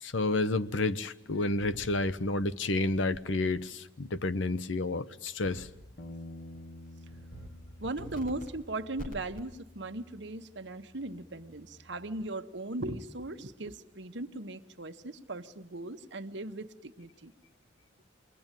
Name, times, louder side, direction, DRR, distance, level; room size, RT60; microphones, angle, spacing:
voice 1, 0.0-5.7, left 2 dB, 85° left, 0.9 m, -30 dB
sound 1, 1.6-2.1 3.1-3.2 5.4-5.9 6.3-6.6 7.1-7.5 7.8-8.5 9.0-9.4, right 1 dB, 45° left, 4.3 m, -45 dB
Bass guitar, 6.0-12.2, left 1 dB, 65° left, 1.5 m, -50 dB
voice 2, 7.8-17.3, right 2 dB, 70° right, 1.2 m, -38 dB
28.5 x 21.5 x 9.1 m
head